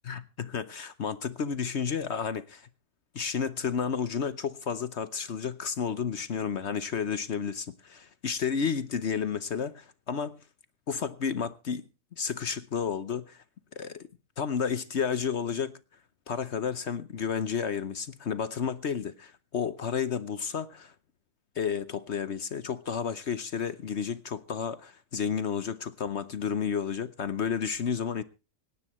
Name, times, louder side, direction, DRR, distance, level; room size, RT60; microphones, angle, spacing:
voice 1, 0.1-2.7 3.1-10.4 10.9-11.8 12.2-13.4 13.8-14.1 14.4-15.8 16.3-20.9 21.6-28.2, left 7 dB, 50° left, 1.0 m, -31 dB
26.0 x 10.0 x 3.1 m
omnidirectional pair, 1.7 m